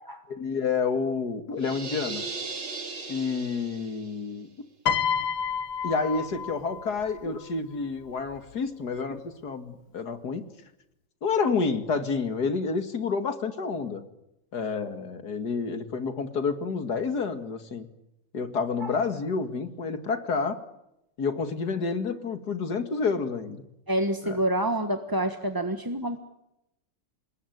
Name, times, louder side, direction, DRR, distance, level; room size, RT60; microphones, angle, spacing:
voice 1, 0.3-2.2 3.1-4.5 5.8-10.4 11.2-14.0 14.5-17.9 18.3-20.6 21.2-23.6 24.3-24.4, left 5 dB, 45° left, 9 dB, 2.5 m, -29 dB
sound 1, 1.6-4.2, right 4 dB, 65° right, 4.1 m, -37 dB
Piano, 4.9-7.2 8.3-8.5, left 7 dB, 65° left, 1.9 m, -29 dB
voice 2, 23.9-26.2, right 1 dB, 15° right, 7 dB, 1.0 m, -27 dB
27.0 x 20.5 x 9.3 m, 0.86 s
omnidirectional pair, 2.4 m